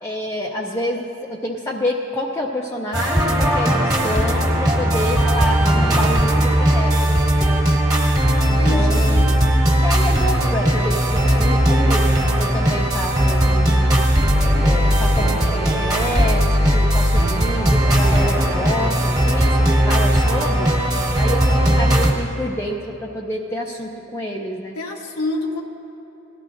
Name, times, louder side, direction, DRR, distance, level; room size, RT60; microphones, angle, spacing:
voice 1, 0.0-7.6 8.5-9.2 9.8-12.1 12.4-14.0 14.6-20.7 21.2-24.8, left 1 dB, 15° left, -2 dB, 0.5 m, -28 dB
sound 1, 2.9-22.1, equal, 20° right, 1.3 m, -17 dB
voice 2, 8.4-9.4 21.6-21.7 24.7-25.6, left 2 dB, 90° left, 0 dB, 1.1 m, -28 dB
18.5 x 13.0 x 2.6 m, 3.0 s
head